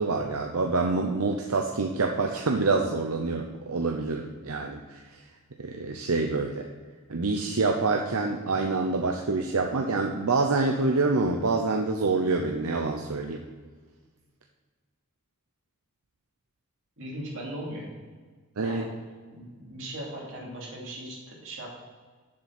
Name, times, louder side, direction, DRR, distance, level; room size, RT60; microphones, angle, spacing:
voice 1, 0.0-5.0 5.6-6.7 7.1-13.4 18.6-18.8, right 3 dB, 80° right, 3 dB, 0.8 m, -26 dB
voice 2, 17.0-18.0 18.6-19.0 19.3-21.7, right 1 dB, 55° right, -4 dB, 2.9 m, -38 dB
7.5 x 7.1 x 5.9 m, 1.5 s
head